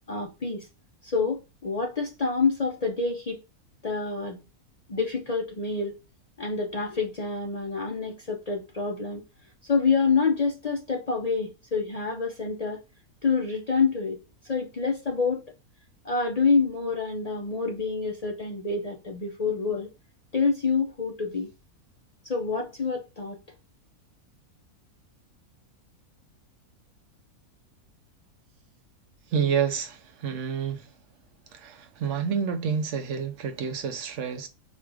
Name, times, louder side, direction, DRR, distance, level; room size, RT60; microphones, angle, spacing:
voice 1, 0.1-0.7 1.0-3.4 3.8-4.4 4.9-5.9 6.4-9.2 9.6-12.8 13.2-14.2 14.5-15.5 16.0-19.9 20.3-21.5 22.2-23.4, left 4 dB, 60° left, 0.4 m, -27 dB
voice 2, 29.3-30.9 31.5-34.5, right 7 dB, 60° right, 0.9 m, -29 dB
4.1 x 2.5 x 4.7 m
omnidirectional pair, 1.6 m